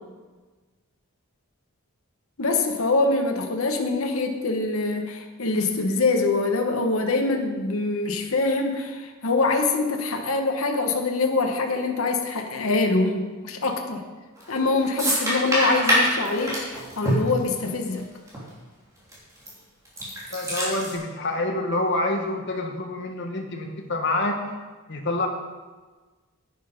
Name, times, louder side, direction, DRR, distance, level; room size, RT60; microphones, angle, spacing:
voice 1, 2.4-14.1 14.5-18.1, left 3 dB, 70° left, 4 dB, 1.2 m, -24 dB
sound 1, 14.4-14.6 15.0-18.0 18.3-18.4 19.1-19.5 19.8-20.9, equal, 15° right, 3.0 m, -24 dB
voice 2, 20.3-24.4 24.9-25.3, left 2 dB, 55° left, 2 dB, 1.5 m, -27 dB
10.0 x 8.9 x 5.2 m, 1.3 s
head